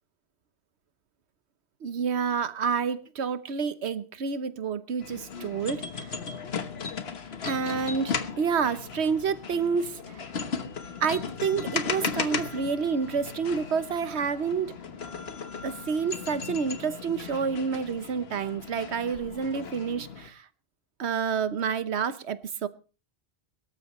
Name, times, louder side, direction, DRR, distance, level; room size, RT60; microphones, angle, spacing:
voice 1, 1.8-6.1 7.4-10.0 11.0-14.7 15.6-20.4 21.0-22.7, right 6 dB, 85° right, 1.2 m, -29 dB
sound 1, 5.0-20.3, left 5 dB, 70° left, 1.4 m, -36 dB
22.5 x 13.0 x 3.1 m
omnidirectional pair, 1.1 m